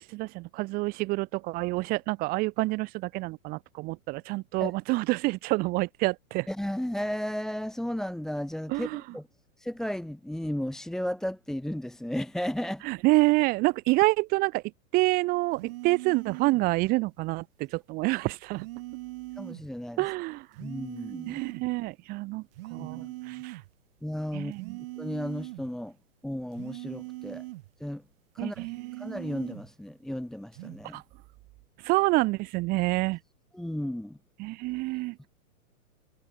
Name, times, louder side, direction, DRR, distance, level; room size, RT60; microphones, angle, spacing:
voice 1, 0.0-6.5 8.7-9.0 12.8-14.6 14.9-18.7 20.0-20.5 21.3-22.5 22.7-23.6 24.3-24.8 28.4-29.0 30.9-31.0 31.8-33.2 34.4-35.3, right 22 dB, 20° right, 1.1 m, -27 dB
voice 2, 6.5-9.2 9.6-12.8 19.4-20.0 20.6-21.4 22.8-23.1 24.0-24.5 25.0-25.9 26.2-27.4 27.8-28.0 28.4-28.7 29.0-31.0 33.5-34.2, left 1 dB, ahead, 1.7 m, -34 dB
sound 1, 15.5-16.7 18.5-19.7 20.5-21.7 22.5-23.7 24.5-25.7 26.5-27.7 28.5-29.7 30.5-30.8, right 20 dB, 40° right, 3.1 m, -41 dB
hypercardioid pair, 155°, 44 cm